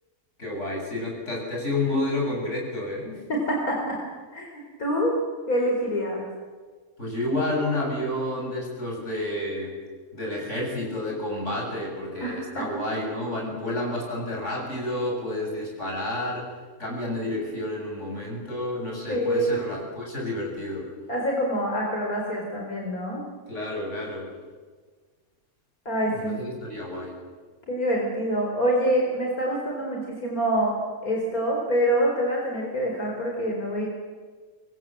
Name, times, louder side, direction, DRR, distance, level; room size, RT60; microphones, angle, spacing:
voice 1, 0.4-3.2 7.0-9.8 10.1-16.5 16.8-20.9 23.5-24.3 26.1-27.1, left 1 dB, 55° left, -1 dB, 7.8 m, -30 dB
voice 2, 3.3-4.0 4.3-5.1 5.5-6.2 12.2-12.8 19.1-19.5 21.1-23.2 25.8-26.4 27.7-30.8 31.0-33.9, equal, 85° left, 0 dB, 4.8 m, -26 dB
25.0 x 23.5 x 7.7 m, 1.5 s
omnidirectional pair, 1.5 m